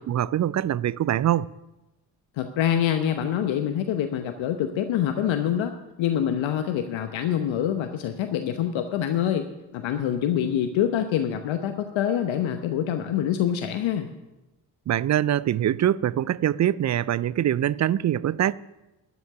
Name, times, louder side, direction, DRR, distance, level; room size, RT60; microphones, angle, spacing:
voice 1, 0.1-1.5 14.9-18.5, right 11 dB, 35° right, 0.4 m, -23 dB
voice 2, 2.4-9.5 9.7-14.1, left 10 dB, 65° left, 1.0 m, -25 dB
12.5 x 6.1 x 9.4 m
hypercardioid pair, 40°, 50 cm